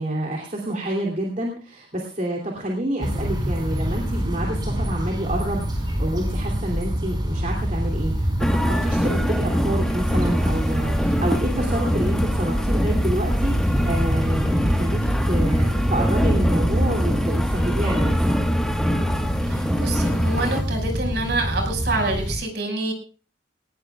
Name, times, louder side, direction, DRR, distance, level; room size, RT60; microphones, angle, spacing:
voice 1, 0.0-18.1, right 1 dB, 40° right, 0 dB, 2.8 m, -28 dB
sound 1, 3.0-22.4, equal, 25° right, 4.7 m, -25 dB
sound 2, 8.4-20.6, equal, 5° left, 1.3 m, -25 dB
voice 2, 19.5-22.9, right 2 dB, 60° right, 3 dB, 5.4 m, -27 dB
20.0 x 19.0 x 2.4 m, 0.36 s
head